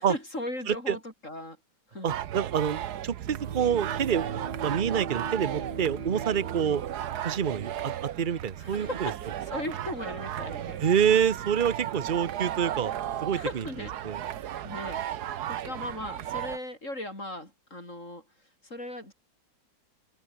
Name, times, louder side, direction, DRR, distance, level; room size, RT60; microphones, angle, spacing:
voice 1, 0.0-1.6 1.9-2.1 6.7-6.8 8.6-10.8 13.3-13.9 14.6-15.0 15.5-18.2 18.6-19.1, left 1 dB, 40° left, 8.4 m, -37 dB
voice 2, 0.7-1.0 2.0-4.3 4.6-6.8 7.2-9.1 10.8-12.9 13.2-13.6 14.0-14.2, right 8 dB, 40° right, 0.8 m, -27 dB
sound 1, 2.1-16.6, right 11 dB, 65° right, 1.4 m, -35 dB
Bowed string instrument, 3.2-7.8, right 4 dB, 85° right, 4.6 m, -41 dB
omnidirectional pair, 1.9 m